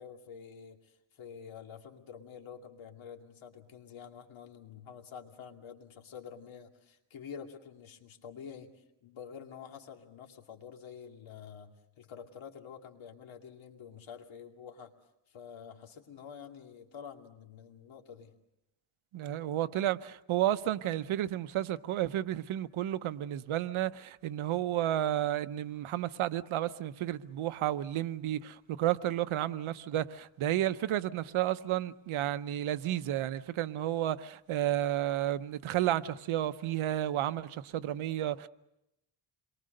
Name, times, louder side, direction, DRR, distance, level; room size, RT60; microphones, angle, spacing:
voice 1, 0.0-14.9 15.3-18.3, left 7 dB, 75° left, 2.6 m, -48 dB
voice 2, 19.1-38.5, right 12 dB, 90° right, 0.9 m, -32 dB
28.0 x 22.5 x 6.6 m
cardioid pair, 115°, 48 cm